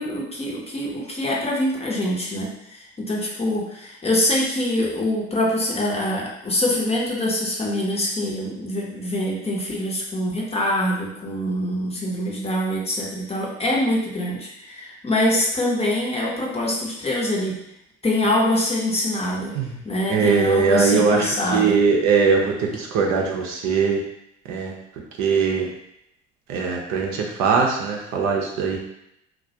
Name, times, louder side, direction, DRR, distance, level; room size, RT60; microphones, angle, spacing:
voice 1, 0.0-17.6 18.0-19.5 19.8-21.8, left 1 dB, 20° left, -3 dB, 0.6 m, -24 dB
voice 2, 20.1-24.0 24.5-24.7 25.2-25.7 26.5-28.8, right 5 dB, 60° right, 0 dB, 0.6 m, -21 dB
2.2 x 2.1 x 2.7 m, 0.79 s
hypercardioid pair, 70°, 32 cm